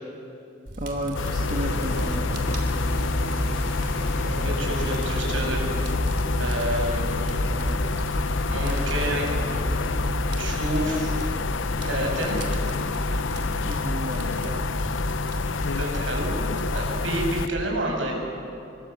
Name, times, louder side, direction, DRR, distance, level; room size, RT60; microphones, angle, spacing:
Fire, 0.7-17.5, equal, 60° right, 3.4 m, -34 dB
voice 1, 0.8-2.6 13.6-14.9, right 1 dB, 45° right, 0 dB, 1.6 m, -33 dB
sound 1, 1.1-17.5, left 4 dB, 80° left, 0.7 m, -28 dB
sound 2, 1.2-15.1, equal, 50° left, 4.3 m, -32 dB
voice 2, 4.2-5.7 6.4-7.0 8.5-9.3 10.4-11.2 11.8-12.4 15.7-16.3 16.7-18.1, right 1 dB, 80° right, 0 dB, 7.3 m, -29 dB
27.0 x 24.0 x 8.4 m, 2.7 s
head